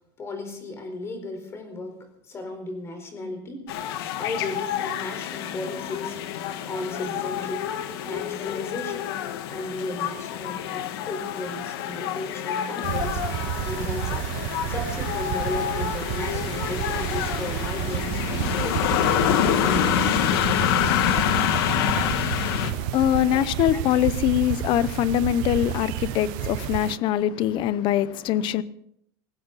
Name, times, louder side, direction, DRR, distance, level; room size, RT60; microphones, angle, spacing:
voice 1, 0.2-2.0 2.2-3.7 4.1-6.2 6.7-7.7 8.0-9.2 9.5-13.2 13.6-14.3 14.7-18.8 19.4-20.3 22.4-23.4 23.7-23.8, left 2 dB, 20° left, 6 dB, 4.3 m, -35 dB
sound 1, 3.7-22.7, left 10 dB, 75° left, 1.6 m, -27 dB
sound 2, 12.8-27.0, right 15 dB, 55° right, 0.6 m, -31 dB
voice 2, 22.1-28.6, left 12 dB, 40° left, 17 dB, 0.7 m, -23 dB
19.5 x 16.0 x 4.1 m, 0.72 s
supercardioid pair, 160°, 13 cm